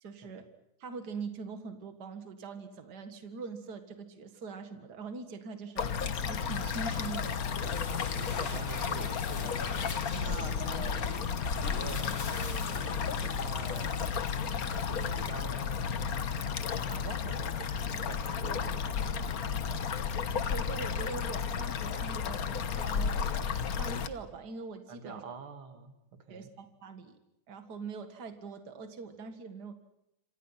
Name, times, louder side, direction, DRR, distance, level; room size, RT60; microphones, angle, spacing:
voice 1, 0.0-0.5 0.8-7.4 20.5-23.4 23.8-25.2 26.3-27.2 27.5-29.7, right 4 dB, 55° right, 7 dB, 2.3 m, -43 dB
sound 1, 5.8-24.1, left 6 dB, 50° left, 1.4 m, -33 dB
sound 2, 6.5-15.1, left 4 dB, 80° left, 3.6 m, -43 dB
voice 2, 8.2-9.7 10.1-11.0 11.6-14.0 14.7-16.4 16.9-18.9 24.9-25.9 26.2-26.5, right 5 dB, 85° right, 7 dB, 2.9 m, -46 dB
27.5 x 26.0 x 5.8 m, 0.82 s
omnidirectional pair, 2.2 m